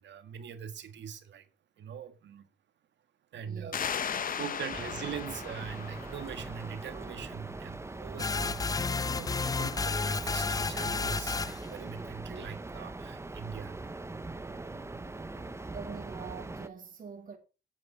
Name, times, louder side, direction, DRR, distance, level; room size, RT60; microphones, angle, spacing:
voice 1, 0.0-1.4 1.8-2.5 3.3-3.7 4.4-13.8, right 8 dB, 65° right, 1.8 m, -42 dB
voice 2, 3.4-4.4 15.7-17.4, right 5 dB, 45° right, 2.3 m, -45 dB
sound 1, 3.7-7.1, left 7 dB, 45° left, 0.9 m, -37 dB
sound 2, 4.7-16.7, right 2 dB, 15° right, 0.9 m, -41 dB
sound 3, 8.2-11.7, left 4 dB, 20° left, 0.4 m, -31 dB
8.8 x 7.6 x 5.5 m
cardioid pair, 90°, 20 cm